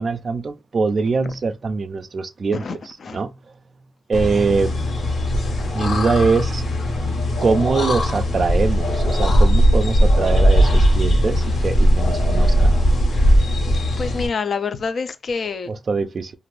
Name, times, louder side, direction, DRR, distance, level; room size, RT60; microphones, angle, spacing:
voice 1, 0.0-2.6 3.1-3.3 4.1-4.7 5.7-6.6 7.4-12.7 15.7-16.3, right 4 dB, 45° right, 0.3 m, -22 dB
voice 2, 2.5-3.2 7.0-7.3 13.7-15.7, left 5 dB, 55° left, 0.4 m, -27 dB
sound 1, 4.1-14.3, equal, 70° left, 1.2 m, -18 dB
2.5 x 2.5 x 3.2 m
wide cardioid pair, 115°, 0 cm